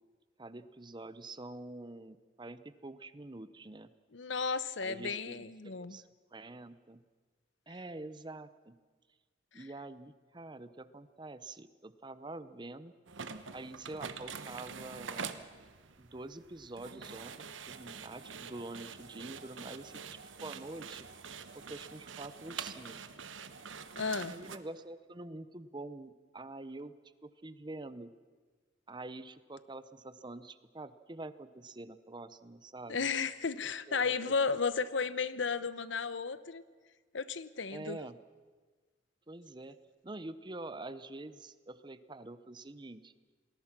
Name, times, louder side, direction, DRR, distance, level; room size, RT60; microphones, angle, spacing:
voice 1, 0.4-3.9 4.8-7.0 7.7-8.7 9.5-12.9 13.5-15.4 16.0-17.3 17.7-21.1 21.5-23.0 24.3-26.9 27.2-28.1 28.9-33.0 33.9-34.1 37.7-38.2 39.3-39.8 40.0-43.1, right 2 dB, 25° right, 13 dB, 0.8 m, -46 dB
voice 2, 4.1-6.0 9.5-9.6 24.0-24.3 32.9-36.6 37.1-38.0, left 5 dB, 75° left, 15 dB, 0.9 m, -34 dB
sound 1, 13.1-24.6, right 6 dB, 90° right, 1.2 m, -46 dB
28.5 x 20.5 x 6.0 m, 1.4 s
head